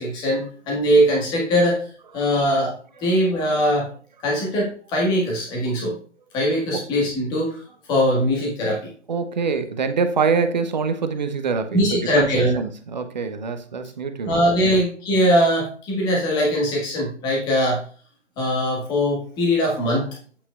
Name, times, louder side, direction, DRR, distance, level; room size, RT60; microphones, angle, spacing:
voice 1, 0.0-1.9 2.1-3.9 4.2-6.0 6.3-7.6 7.9-8.9 11.7-12.5 14.2-17.8 18.4-20.1, equal, 10° left, 1.5 m, -21 dB
voice 2, 9.1-12.3 12.5-14.3 14.6-14.8, right 5 dB, 40° right, 0.7 m, -24 dB
8.3 x 5.4 x 2.4 m
figure-of-eight pair, 145°, 36 cm